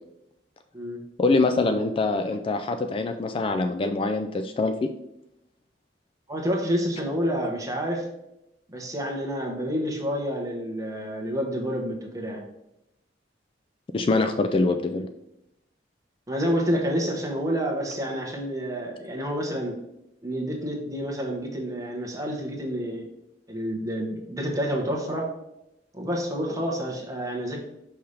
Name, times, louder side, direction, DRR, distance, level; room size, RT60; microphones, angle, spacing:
voice 1, 1.2-5.0 13.9-15.1, left 3 dB, 30° left, 8 dB, 0.3 m, -24 dB
voice 2, 6.3-8.1 8.7-12.4 16.3-19.7 20.2-23.1 23.5-25.3 25.9-27.6, equal, 20° right, 0 dB, 1.2 m, -29 dB
5.6 x 5.5 x 3.3 m, 0.86 s
head